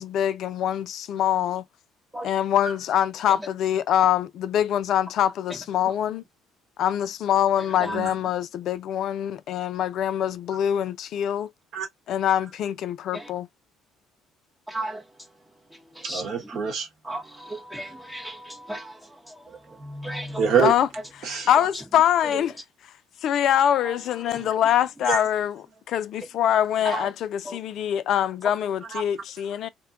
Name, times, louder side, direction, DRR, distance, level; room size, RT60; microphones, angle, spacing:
voice 1, 0.0-1.6 2.2-6.2 6.8-11.5 12.1-13.5 20.6-20.9 21.2-22.5 23.2-29.7, left 10 dB, 60° left, 0.4 m, -24 dB
voice 2, 7.8-8.1 11.7-11.9 16.0-16.9 19.5-20.7 21.2-21.5 25.1-25.2, right 6 dB, 60° right, 1.0 m, -26 dB
voice 3, 14.7-15.0 16.0-16.2 17.1-18.9 20.0-20.4 26.9-27.1 27.5-27.6, right 1 dB, 10° right, 0.6 m, -34 dB
2.7 x 2.2 x 2.3 m
hypercardioid pair, 60°, 0 cm